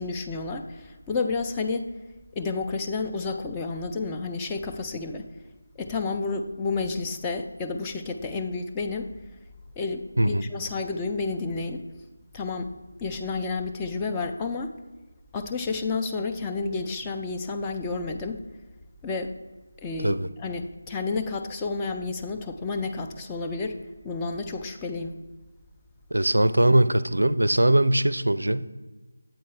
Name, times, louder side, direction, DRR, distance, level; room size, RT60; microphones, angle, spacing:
voice 1, 0.0-1.9 2.4-5.3 5.8-9.1 9.8-11.8 12.3-12.7 13.0-14.7 15.3-18.4 19.0-19.3 19.8-23.8 24.0-25.2, left 4 dB, 10° left, 3 dB, 0.4 m, -30 dB
voice 2, 26.1-28.7, right 1 dB, 75° right, 15 dB, 0.4 m, -21 dB
7.8 x 4.5 x 4.3 m, 1.2 s
figure-of-eight pair, 160°, 0 cm